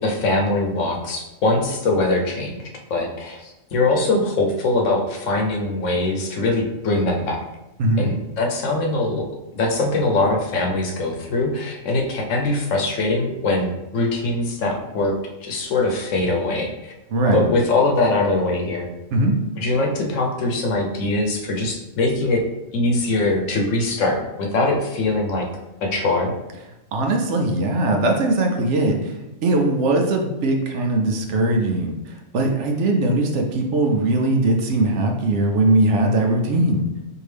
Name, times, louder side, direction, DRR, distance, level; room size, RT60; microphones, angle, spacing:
voice 1, 0.0-7.4 8.0-9.2 9.5-15.1 15.4-16.9 17.3-18.9 19.6-22.4 22.7-25.5 25.8-26.3, left 2 dB, 70° left, 0 dB, 1.1 m, -22 dB
voice 2, 17.1-17.5 19.1-19.4 26.9-36.9, right 2 dB, 70° right, 3 dB, 0.8 m, -20 dB
4.6 x 2.6 x 3.3 m, 0.95 s
omnidirectional pair, 1.4 m